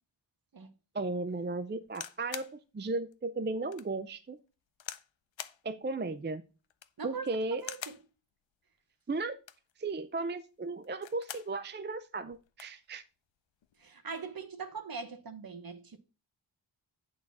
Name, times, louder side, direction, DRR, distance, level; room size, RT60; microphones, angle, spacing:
voice 1, 0.9-4.4 5.6-6.4 7.0-7.6 9.1-9.4 9.8-13.0, right 3 dB, 25° right, 0.5 m, -35 dB
sound 1, 1.9-2.6 3.1-3.2 3.7-3.9 4.8-5.1 5.4-5.6 6.6-7.0 7.6-8.1 9.3-9.7 10.8-11.5 11.9-12.0 12.3-12.8 13.6-13.9, left 9 dB, 75° left, 0.7 m, -44 dB
voice 2, 7.0-7.3 7.6-8.0 13.8-16.0, right 5 dB, 50° right, 1.1 m, -41 dB
8.6 x 4.0 x 5.9 m
wide cardioid pair, 75°, 46 cm